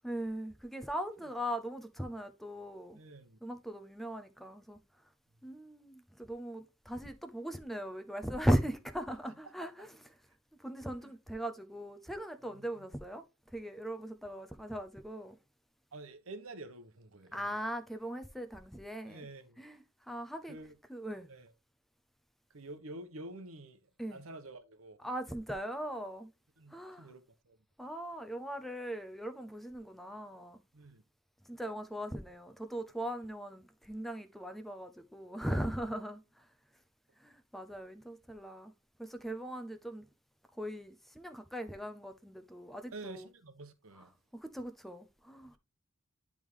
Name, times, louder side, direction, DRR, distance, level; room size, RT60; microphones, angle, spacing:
voice 1, 0.0-3.0 3.4-4.8 5.4-9.9 10.6-13.2 13.5-15.4 17.3-19.3 19.6-20.6 20.9-21.3 24.0-24.2 25.0-26.3 26.7-27.1 27.8-30.6 31.5-36.5 37.2-38.7 39.0-40.1 40.5-43.3 44.3-45.6, equal, ahead, 0.6 m, -39 dB
voice 2, 2.9-3.4 11.0-11.1 12.5-12.9 15.9-17.6 19.1-19.6 20.4-20.8 21.3-21.5 22.5-25.0 26.6-27.6 30.7-31.0 42.9-44.1, right 2 dB, 80° right, 1.0 m, -49 dB
10.5 x 3.6 x 3.1 m
head